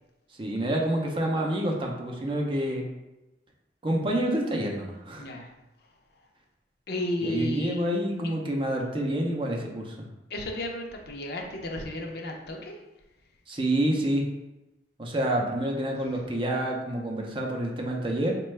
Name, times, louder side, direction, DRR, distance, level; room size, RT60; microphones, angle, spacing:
voice 1, 0.4-2.8 3.8-5.3 7.2-10.1 13.5-14.2 15.0-18.3, right 1 dB, 30° right, 0 dB, 0.5 m, -28 dB
voice 2, 5.2-5.5 6.9-7.8 8.2-8.3 10.3-12.8 16.1-16.2, equal, 65° left, 2 dB, 0.5 m, -33 dB
4.2 x 2.2 x 3.1 m, 0.99 s
head